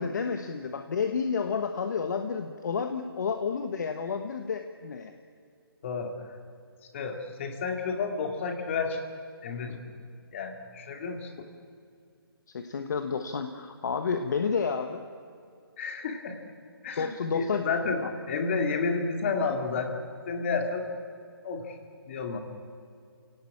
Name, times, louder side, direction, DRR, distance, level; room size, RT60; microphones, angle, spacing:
voice 1, 0.0-5.1 12.5-15.0 17.0-17.7 18.0-18.1, left 5 dB, 50° left, 7 dB, 1.3 m, -30 dB
voice 2, 6.9-9.0 9.4-9.8 10.3-11.3 15.8-16.4 16.8-20.9 21.4-21.8 22.0-22.4, left 4 dB, 30° left, 5 dB, 2.6 m, -31 dB
28.5 x 18.0 x 8.6 m, 2.3 s
hypercardioid pair, 165°, 13 cm